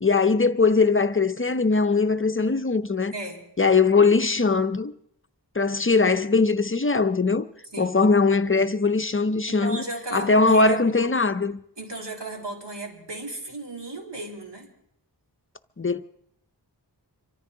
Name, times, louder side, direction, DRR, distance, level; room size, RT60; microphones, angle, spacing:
voice 1, 0.0-3.1 3.6-4.9 5.6-7.5 7.8-9.8 10.1-11.6 15.8-16.0, left 4 dB, 30° left, 0.6 m, -21 dB
voice 2, 3.1-3.4 7.7-8.0 9.5-10.9 11.8-14.7, right 2 dB, 85° right, 3.0 m, -35 dB
25.5 x 14.0 x 3.7 m
wide cardioid pair, 65°, 41 cm